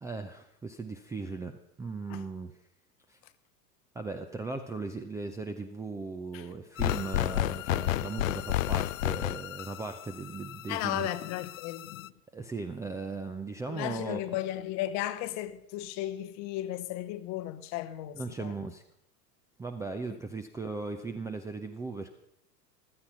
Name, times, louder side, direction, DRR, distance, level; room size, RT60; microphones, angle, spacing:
voice 1, 0.0-2.5 3.1-3.2 3.9-11.1 12.3-14.2 18.1-18.8 19.6-22.1, right 3 dB, 5° right, 0.5 m, -38 dB
sound 1, 6.8-12.1, left 14 dB, 55° left, 0.5 m, -32 dB
voice 2, 10.7-12.1 13.7-18.5, left 13 dB, 35° left, 0.9 m, -35 dB
15.5 x 13.0 x 5.5 m
figure-of-eight pair, 90°, 49 cm